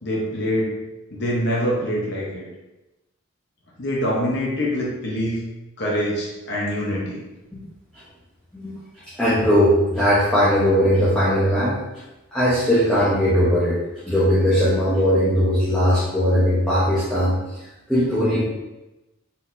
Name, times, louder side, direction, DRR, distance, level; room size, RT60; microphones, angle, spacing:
voice 1, 0.0-0.7 1.1-2.5 3.8-5.5 5.8-7.2, equal, 55° left, -4 dB, 1.0 m, -24 dB
voice 2, 9.2-11.8 12.3-13.8 14.1-17.3 17.9-18.4, equal, 5° left, -11 dB, 0.9 m, -19 dB
4.1 x 4.0 x 2.7 m, 1.0 s
head